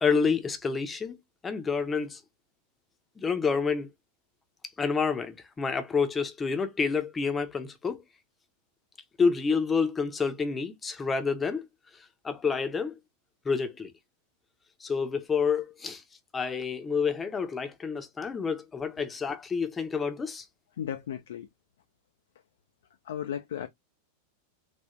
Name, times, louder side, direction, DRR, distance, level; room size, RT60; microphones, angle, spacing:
voice 1, 0.0-2.2 3.2-3.9 4.8-8.0 9.2-11.7 11.9-13.0 13.4-13.9 14.8-16.0 16.3-20.4, left 5 dB, 15° left, 0.6 m, -28 dB
voice 2, 20.7-21.5 23.0-23.7, left 9 dB, 60° left, 0.3 m, -35 dB
3.6 x 2.4 x 2.9 m
figure-of-eight pair, 90°, 0 cm